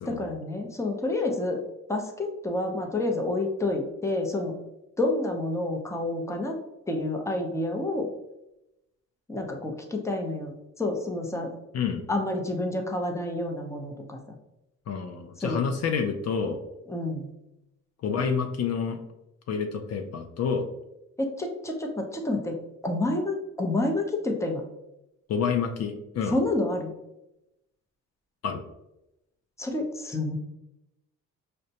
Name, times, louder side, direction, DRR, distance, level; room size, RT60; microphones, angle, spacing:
voice 1, 0.1-1.6 1.9-4.6 5.0-6.6 6.9-8.1 9.3-11.5 12.1-14.2 15.4-15.6 16.9-17.3 21.2-22.6 22.8-24.6 26.3-26.9 29.6-30.4, left 2 dB, 10° left, 2 dB, 0.6 m, -29 dB
voice 2, 14.9-16.6 18.0-19.0 19.5-20.7 25.3-26.4 28.4-28.6, left 6 dB, 55° left, 5 dB, 0.5 m, -28 dB
5.0 x 2.1 x 2.7 m, 0.89 s
cardioid pair, 90°, 30 cm